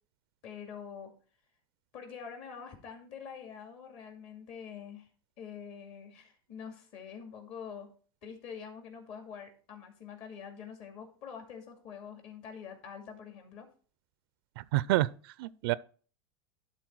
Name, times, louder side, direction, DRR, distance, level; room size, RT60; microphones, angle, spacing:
voice 1, 0.4-1.1 1.9-5.1 5.4-7.9 8.2-13.7, left 7 dB, 50° left, 2.4 m, -45 dB
voice 2, 14.6-15.7, right 17 dB, 70° right, 0.4 m, -29 dB
11.5 x 4.2 x 4.6 m
supercardioid pair, 125°, 13 cm